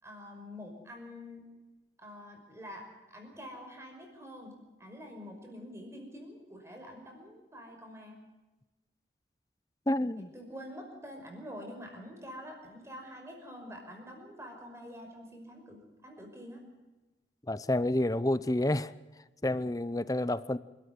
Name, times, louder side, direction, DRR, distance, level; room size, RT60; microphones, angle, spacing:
voice 1, 0.0-1.5 2.0-8.2 10.2-16.6, equal, 15° right, 2 dB, 5.6 m, -46 dB
voice 2, 9.9-10.3 17.5-18.9 19.4-20.6, left 1 dB, 20° left, 16 dB, 0.7 m, -29 dB
27.5 x 13.5 x 9.5 m, 1.1 s
head